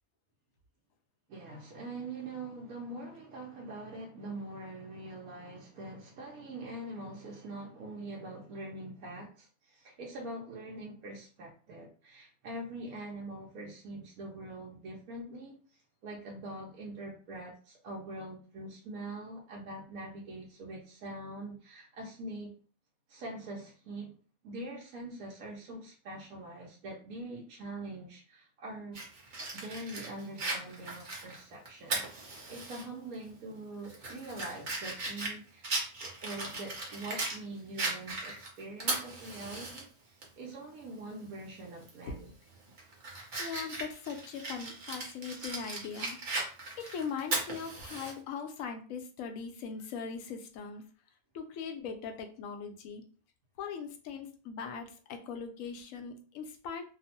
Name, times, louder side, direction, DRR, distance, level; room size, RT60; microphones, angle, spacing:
voice 1, 1.3-22.5 23.1-24.2 24.4-29.0 29.5-35.7 36.0-42.3, right 2 dB, 80° right, -2 dB, 1.1 m, -43 dB
Fire, 28.9-32.8 33.2-33.3 33.8-37.4 37.8-39.8 40.2-40.3 41.8-42.1 42.5-48.1, right 2 dB, 40° right, 0.8 m, -37 dB
voice 2, 43.2-46.2 46.8-50.8 51.3-53.0 53.6-56.8, left 6 dB, 75° left, 4 dB, 0.9 m, -40 dB
2.9 x 2.0 x 2.7 m, 0.39 s
omnidirectional pair, 1.5 m